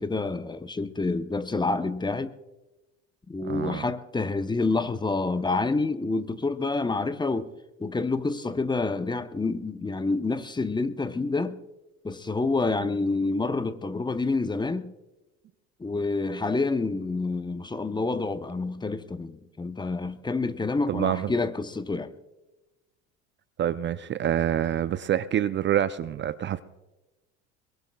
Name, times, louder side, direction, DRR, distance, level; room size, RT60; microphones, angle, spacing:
voice 1, 0.0-2.3 3.3-7.5 7.8-11.6 12.0-14.9 15.8-22.1, left 3 dB, 15° left, 0.8 m, -28 dB
voice 2, 3.4-3.9 20.9-21.3 23.6-26.6, right 10 dB, 35° right, 0.6 m, -26 dB
22.5 x 22.5 x 2.3 m
hypercardioid pair, 75°, 34 cm